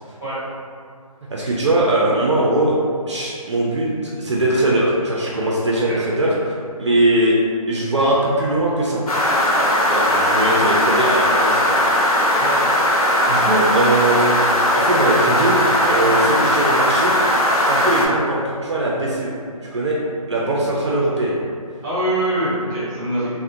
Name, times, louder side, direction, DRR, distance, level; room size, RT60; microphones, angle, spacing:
voice 1, 1.3-2.7 3.1-7.4 7.7-9.0 9.8-11.8 13.3-14.2 14.7-17.2 17.6-19.3 19.6-20.0 20.3-21.4 23.2-23.3, right 1 dB, 50° right, -4 dB, 0.4 m, -20 dB
sound 1, 9.1-18.1, left 1 dB, 70° left, 0.6 m, -18 dB
voice 2, 12.3-12.7 20.6-20.7 21.8-23.3, right 1 dB, 10° right, -13 dB, 0.6 m, -24 dB
2.5 x 2.0 x 2.6 m, 2.2 s
figure-of-eight pair, 160°, 19 cm